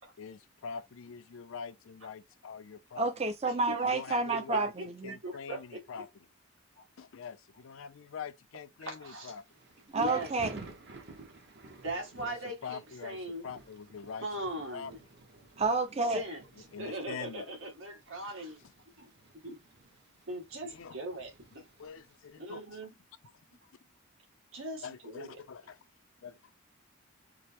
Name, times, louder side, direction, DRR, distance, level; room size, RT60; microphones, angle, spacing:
voice 1, 0.2-3.1 3.8-4.7 5.0-6.1 7.0-9.4 12.6-13.2 13.4-14.3 14.7-14.9 16.7-17.4 20.6-21.0 21.8-22.6 24.8-25.8 26.2-26.4, left 6 dB, 70° left, 0.4 m, -43 dB
voice 2, 3.0-4.7 5.0-5.1 9.9-10.6 15.6-16.2, right 3 dB, 30° right, 0.5 m, -29 dB
voice 3, 3.6-6.0 6.8-6.9 8.8-9.4 9.9-10.3 11.8-13.5 14.2-15.0 16.1-16.4 16.8-18.6 19.0-19.1 19.4-19.6 20.3-21.6 22.4-22.9 24.5-25.4, right 1 dB, 75° right, 1.6 m, -40 dB
Thunder / Rain, 9.3-22.3, right 3 dB, 50° right, 0.9 m, -53 dB
4.6 x 2.0 x 3.4 m
head